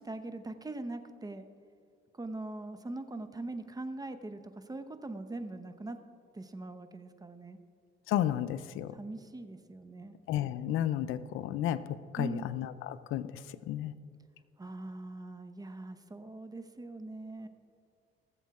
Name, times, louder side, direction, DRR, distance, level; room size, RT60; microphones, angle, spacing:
voice 1, 0.0-1.5 2.2-6.0 6.3-7.6 8.9-10.1 12.2-12.5 14.6-17.5, right 2 dB, 20° right, 9 dB, 0.8 m, -41 dB
voice 2, 8.1-8.9 10.3-11.8 12.1-13.4 13.7-13.9, left 11 dB, 90° left, 15 dB, 0.5 m, -32 dB
18.5 x 7.2 x 4.8 m, 2.3 s
cardioid pair, 90°, 20 cm